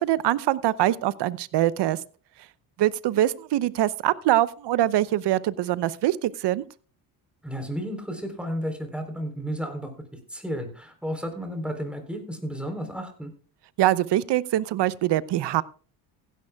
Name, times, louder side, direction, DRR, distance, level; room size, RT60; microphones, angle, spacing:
voice 1, 0.0-2.0 2.8-6.6 13.8-15.6, right 14 dB, 55° right, 19 dB, 0.8 m, -23 dB
voice 2, 7.4-9.9 10.3-13.3, equal, ahead, 5 dB, 3.7 m, -32 dB
16.0 x 11.0 x 2.3 m, 0.39 s
supercardioid pair, 70°, 49 cm